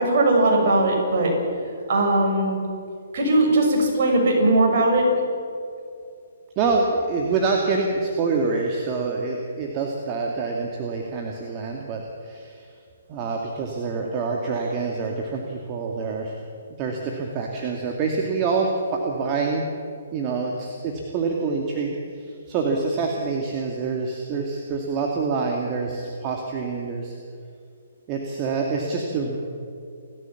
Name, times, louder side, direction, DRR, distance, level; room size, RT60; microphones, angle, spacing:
voice 1, 0.0-1.3 1.9-2.6 3.1-5.1, right 2 dB, 50° right, 0 dB, 6.9 m, -19 dB
voice 2, 6.6-12.6 13.1-16.4 16.8-19.6 20.1-27.2 28.1-29.4, right 4 dB, 30° right, 1 dB, 2.2 m, -26 dB
29.5 x 13.5 x 7.2 m, 2.4 s
figure-of-eight pair, 130°, 0 cm